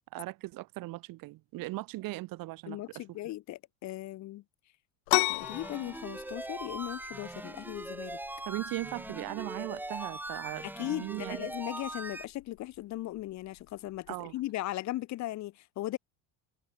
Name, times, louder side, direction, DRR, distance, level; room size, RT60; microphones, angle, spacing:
voice 1, 0.1-3.2 8.5-11.5 14.1-14.3, right 19 dB, 45° right, 2.8 m, -38 dB
voice 2, 2.7-4.4 5.3-8.2 10.6-16.0, left 16 dB, 40° left, 1.5 m, -38 dB
sound 1, 5.1-14.5, left 32 dB, 80° left, 0.8 m, -37 dB
sound 2, 5.4-12.2, right 1 dB, 5° right, 3.0 m, -41 dB
cardioid pair, 170°, 45 cm